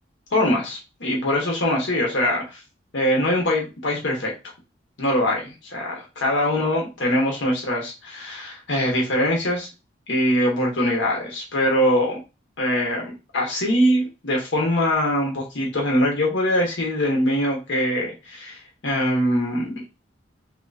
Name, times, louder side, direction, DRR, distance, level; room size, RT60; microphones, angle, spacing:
voice 1, 0.3-2.6 2.9-4.3 5.0-9.7 10.1-12.2 12.6-19.7, left 1 dB, 80° left, -1 dB, 1.2 m, -23 dB
3.6 x 2.9 x 2.6 m, 0.28 s
head